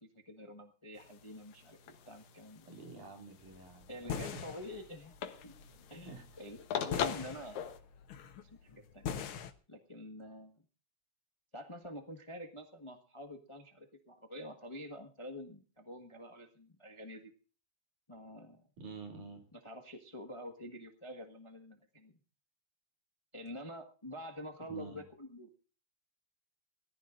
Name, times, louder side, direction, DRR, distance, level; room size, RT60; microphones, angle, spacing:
voice 1, 0.0-2.7 3.9-5.5 5.9-7.6 8.4-9.1 9.7-10.5 11.5-17.3 18.1-18.6 19.5-22.2 23.3-25.7, equal, 20° left, 4 dB, 0.8 m, -47 dB
sound 1, 0.9-7.8, left 9 dB, 75° left, 2.4 m, -43 dB
voice 2, 2.7-4.4 6.0-6.2 18.8-19.4 24.7-25.0, right 4 dB, 90° right, 2 dB, 4.4 m, -48 dB
sound 2, 3.4-9.5, left 7 dB, 60° left, 1.5 m, -43 dB
21.5 x 14.5 x 2.6 m, 0.37 s
omnidirectional pair, 3.4 m